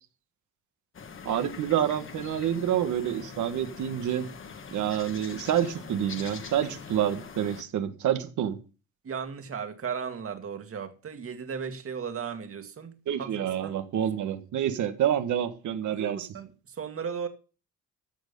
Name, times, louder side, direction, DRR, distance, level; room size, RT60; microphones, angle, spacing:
sound 1, 0.9-7.6, left 6 dB, 45° left, 1.7 m, -43 dB
voice 1, 1.2-4.3 4.7-8.6 13.1-16.3, right 10 dB, 75° right, 1.6 m, -28 dB
voice 2, 9.0-12.9 13.2-13.8 15.9-17.3, right 6 dB, 50° right, 2.1 m, -36 dB
14.0 x 6.5 x 5.4 m
cardioid pair, 90°, 30 cm